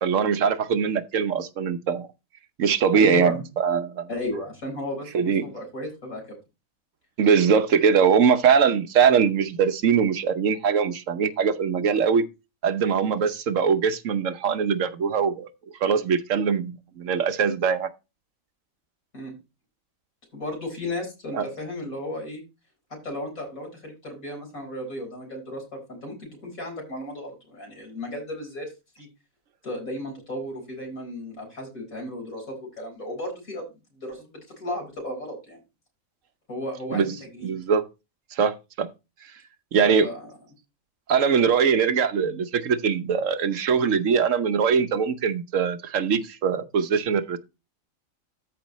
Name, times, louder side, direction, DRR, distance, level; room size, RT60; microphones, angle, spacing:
voice 1, 0.0-2.1 2.6-4.1 5.1-5.4 7.2-12.3 12.6-15.5 15.8-17.9 21.3-21.4 36.9-37.1 37.4-37.8 38.3-38.9 39.7-40.1 41.1-47.4, right 6 dB, 70° right, 1.2 m, -22 dB
voice 2, 2.9-3.4 4.1-6.2 19.1-19.4 20.3-22.4 23.0-29.1 29.6-35.6 36.5-37.6 39.8-40.3, left 1 dB, 90° left, 4.7 m, -34 dB
13.5 x 5.2 x 3.0 m
omnidirectional pair, 1.4 m